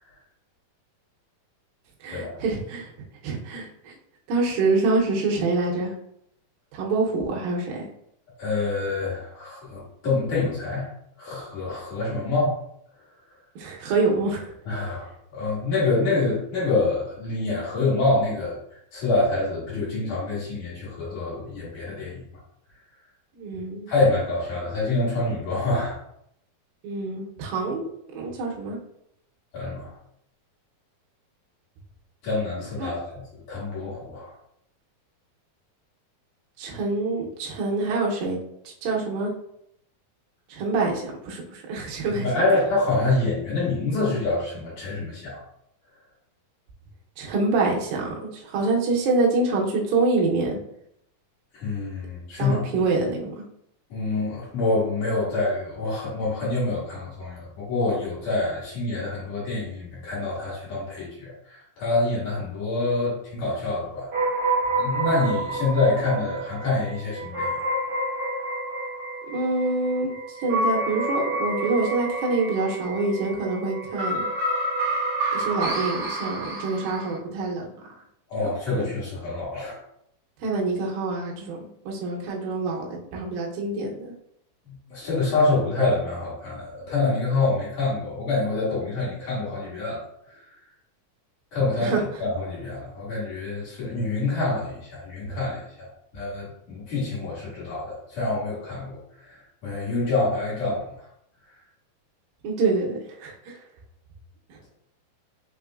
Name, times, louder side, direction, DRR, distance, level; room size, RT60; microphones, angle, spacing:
voice 1, 2.0-2.9 3.2-4.0 4.3-5.9 6.7-7.9 13.6-14.5 23.4-23.9 26.8-27.9 28.1-28.8 32.8-32.9 36.6-38.4 38.6-39.3 40.5-42.5 47.2-50.6 52.4-53.3 69.3-74.3 75.3-77.9 78.4-78.9 80.4-84.1 91.8-92.0 102.4-103.6 104.5-104.6, right 3 dB, 75° right, -2 dB, 2.5 m, -26 dB
voice 2, 8.4-10.9 11.2-12.6 14.7-18.5 18.9-22.2 23.9-26.0 29.5-29.9 32.2-34.3 42.1-45.4 51.5-52.9 53.9-64.1 64.8-67.5 78.3-79.8 84.7-90.0 90.3-90.5 91.5-101.1, left 2 dB, 55° left, -8 dB, 2.8 m, -26 dB
sound 1, 64.1-77.2, right 2 dB, 55° right, 1.7 m, -28 dB
5.9 x 3.5 x 2.4 m, 0.74 s
omnidirectional pair, 4.5 m